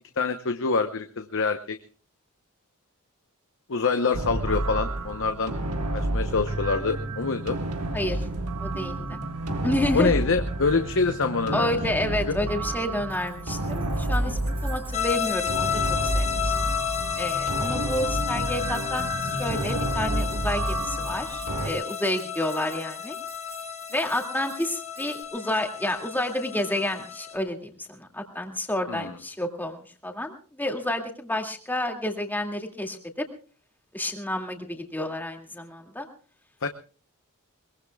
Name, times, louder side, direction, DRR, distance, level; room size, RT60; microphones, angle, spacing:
voice 1, 0.2-1.8 3.7-5.5 5.9-7.6 9.9-11.7 12.3-12.4 28.9-29.1 36.6-36.7, left 4 dB, 60° left, 7 dB, 0.9 m, -25 dB
sound 1, 4.1-21.7, right 2 dB, 85° right, 1.6 m, -30 dB
voice 2, 8.6-9.2 9.6-10.1 11.5-16.7 17.2-23.2 23.9-33.3 33.9-36.1, left 1 dB, 10° left, 3 dB, 2.3 m, -30 dB
sound 2, 13.1-25.2, right 5 dB, 25° right, 2.7 m, -49 dB
sound 3, 14.9-27.4, left 9 dB, 30° left, 1.4 m, -31 dB
22.5 x 22.0 x 2.3 m, 0.39 s
head